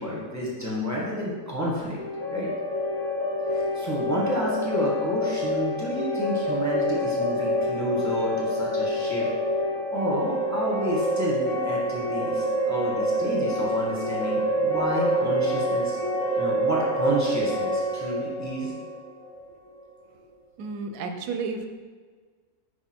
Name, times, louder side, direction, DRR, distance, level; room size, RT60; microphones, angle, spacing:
voice 1, 0.0-2.0 2.3-2.5 3.5-9.3 9.9-16.0 16.3-18.7, equal, 10° right, -5 dB, 1.1 m, -30 dB
sound 1, 2.0-19.7, equal, 65° left, 1.6 m, -27 dB
voice 2, 20.6-21.7, right 4 dB, 85° right, 6 dB, 1.2 m, -31 dB
5.3 x 4.7 x 4.3 m, 1.5 s
omnidirectional pair, 1.6 m